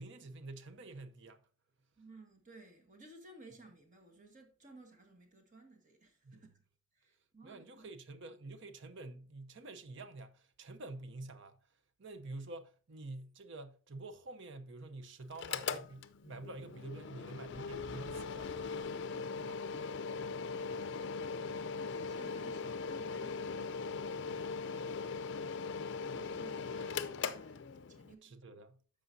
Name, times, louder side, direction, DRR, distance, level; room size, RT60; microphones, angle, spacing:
voice 1, 0.0-1.5 6.2-6.4 7.4-11.6 12.0-18.5 19.4-19.6 20.5-20.6 28.2-28.8, right 2 dB, 55° right, 0.7 m, -48 dB
voice 2, 2.0-6.6 6.9-7.9 19.1-19.5 21.7-24.3 25.9-28.4, right 2 dB, 35° right, 1.5 m, -58 dB
Mechanical fan, 15.3-28.1, left 5 dB, 55° left, 0.4 m, -40 dB
13.5 x 5.0 x 2.6 m
head